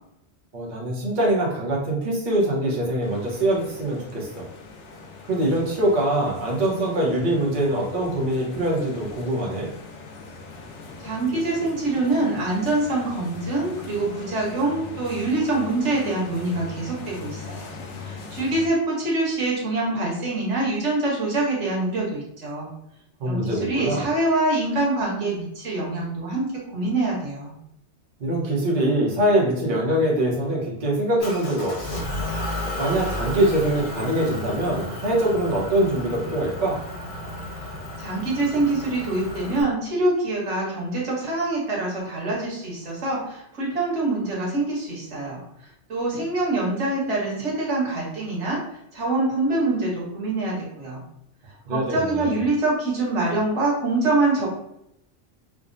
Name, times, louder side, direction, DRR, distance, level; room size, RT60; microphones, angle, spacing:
voice 1, 0.5-4.4 5.2-9.7 23.2-24.1 28.2-32.0 32.8-36.8 51.7-52.4, right 1 dB, 45° right, -4 dB, 1.0 m, -23 dB
sound 1, 3.0-18.7, left 4 dB, 85° left, 0.9 m, -40 dB
voice 2, 11.0-17.7 18.0-22.7 23.2-27.5 38.0-45.4 45.9-48.6 48.9-51.0 51.7-54.5, right 2 dB, 85° right, -3 dB, 1.4 m, -25 dB
Motor vehicle (road) / Engine, 31.2-39.6, left 1 dB, 50° left, 1.0 m, -33 dB
4.8 x 2.1 x 2.6 m, 0.78 s
omnidirectional pair, 1.2 m